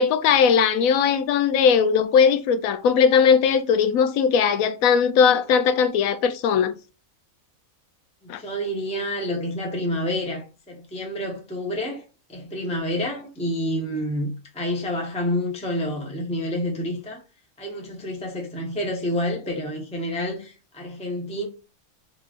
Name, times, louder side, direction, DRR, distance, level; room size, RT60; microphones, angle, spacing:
voice 1, 0.0-6.7 8.3-8.4, left 6 dB, 85° left, 1.0 m, -19 dB
voice 2, 8.2-12.0 12.3-17.2 17.6-21.5, left 1 dB, 5° left, 0.7 m, -28 dB
3.6 x 3.0 x 2.4 m
omnidirectional pair, 1.4 m